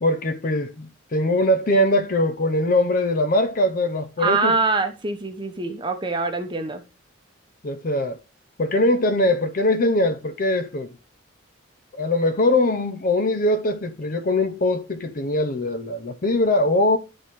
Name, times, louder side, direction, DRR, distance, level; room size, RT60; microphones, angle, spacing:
voice 1, 0.0-4.6 7.6-8.2 8.6-10.9 11.9-17.0, left 1 dB, 40° left, 0.6 m, -21 dB
voice 2, 4.2-6.8, right 4 dB, 25° right, 0.8 m, -24 dB
11.0 x 4.2 x 3.0 m
head